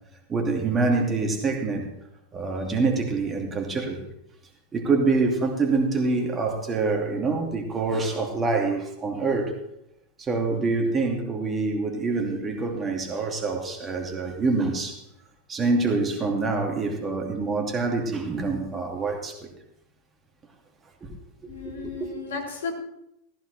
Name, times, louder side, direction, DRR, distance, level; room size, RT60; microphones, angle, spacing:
voice 1, 0.3-1.9 2.3-4.0 4.7-9.6 10.2-15.0 15.5-19.5 21.0-21.1 21.4-22.1, right 3 dB, 25° right, 2.6 m, -26 dB
voice 2, 21.5-22.7, left 5 dB, 70° left, 3.1 m, -34 dB
15.0 x 14.5 x 3.4 m
figure-of-eight pair, 90°, 0 cm